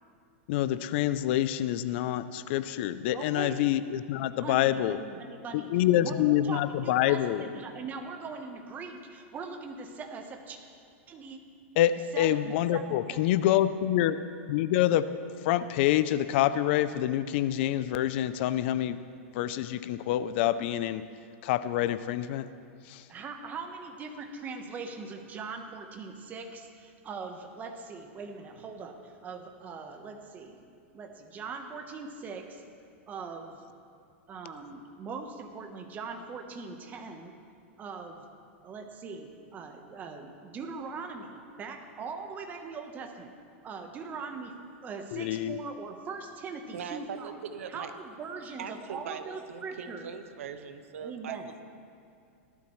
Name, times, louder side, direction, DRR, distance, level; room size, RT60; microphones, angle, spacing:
voice 1, 0.5-5.0 5.7-7.4 11.8-14.2 14.5-15.0 15.4-19.0 19.3-21.0 21.4-22.5 45.1-45.6, left 12 dB, 55° left, 14 dB, 0.5 m, -26 dB
voice 2, 3.1-3.6 4.3-10.6 11.1-11.4 12.0-13.2 23.1-30.6 30.9-32.6 33.1-33.6 34.3-37.3 37.8-38.3 38.6-43.3 43.6-47.4 47.7-50.1 51.0-51.5, right 4 dB, 25° right, 5 dB, 1.1 m, -41 dB
voice 3, 46.7-47.9 48.6-51.6, right 7 dB, 85° right, 10 dB, 0.9 m, -41 dB
18.0 x 12.0 x 3.2 m, 2.4 s
supercardioid pair, 140°, 7 cm